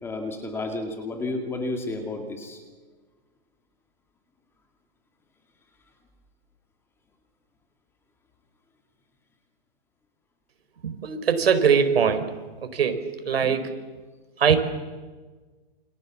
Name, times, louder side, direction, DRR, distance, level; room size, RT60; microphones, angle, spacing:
voice 1, 0.0-2.6, left 2 dB, 10° left, 5 dB, 2.2 m, -31 dB
voice 2, 10.8-12.3 12.6-13.7 14.4-14.5, right 7 dB, 75° right, 8 dB, 4.6 m, -22 dB
28.0 x 27.5 x 7.3 m, 1.4 s
hypercardioid pair, 165°, 30 cm